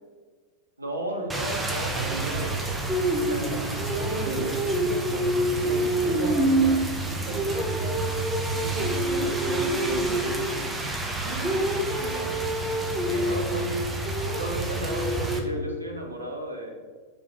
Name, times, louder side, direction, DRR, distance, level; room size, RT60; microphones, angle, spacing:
voice 1, 0.8-2.8 3.2-3.5 6.1-6.5 13.0-13.9 14.3-16.8, right 1 dB, 80° right, 0 dB, 1.1 m, -34 dB
Rain, 1.3-15.4, right 1 dB, 10° right, 0.9 m, -26 dB
voice 2, 1.9-2.5 3.4-8.0 8.6-10.7 11.2-11.6 11.9-12.4, right 4 dB, 50° right, 0 dB, 0.8 m, -36 dB
6.1 x 4.8 x 3.9 m, 1.5 s
figure-of-eight pair, 90°, 0 cm